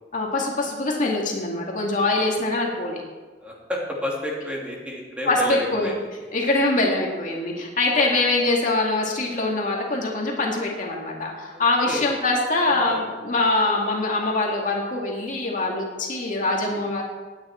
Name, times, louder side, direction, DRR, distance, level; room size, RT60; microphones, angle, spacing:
voice 1, 0.1-3.0 5.3-5.9 6.3-17.0, left 2 dB, 45° left, -1 dB, 2.2 m, -23 dB
voice 2, 3.4-5.9 11.5-12.1 12.7-13.0 16.7-16.9, equal, 5° right, -3 dB, 2.6 m, -31 dB
18.0 x 9.6 x 4.4 m, 1.3 s
head